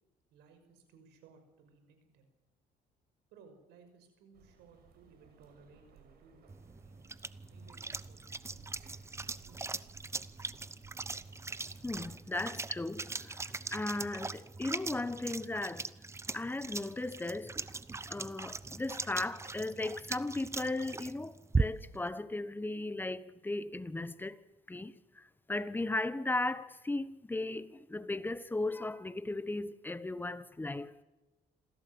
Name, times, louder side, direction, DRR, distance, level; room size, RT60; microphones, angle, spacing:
voice 1, 0.3-2.2 3.3-6.4 6.7-6.9 7.3-9.6, right 5 dB, 90° right, 5.9 m, -61 dB
sound 1, 4.3-12.1, right 7 dB, 70° right, 6.2 m, -61 dB
sound 2, 6.5-22.0, right 3 dB, 15° right, 0.8 m, -40 dB
voice 2, 11.8-15.9 16.3-17.8 18.1-31.0, left 2 dB, 10° left, 1.1 m, -37 dB
26.5 x 16.0 x 8.0 m
cardioid pair, 110°, 17 cm